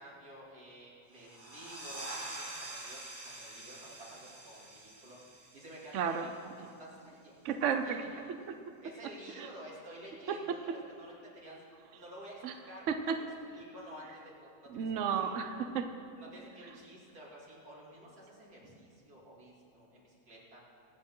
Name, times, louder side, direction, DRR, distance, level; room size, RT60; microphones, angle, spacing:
voice 1, 0.0-6.5 6.8-7.3 7.8-8.2 8.8-11.6 11.9-12.9 13.5-15.5 16.2-20.6, equal, 80° right, -6 dB, 3.5 m, -51 dB
sound 1, 1.1-6.5, right 2 dB, 45° right, 2.2 m, -46 dB
voice 2, 5.9-6.3 7.4-8.0 9.4-9.5 10.3-10.6 12.4-12.5 12.9-13.2 14.7-15.9, right 7 dB, 60° right, 7 dB, 0.9 m, -32 dB
23.5 x 8.6 x 3.8 m, 2.4 s
omnidirectional pair, 1.6 m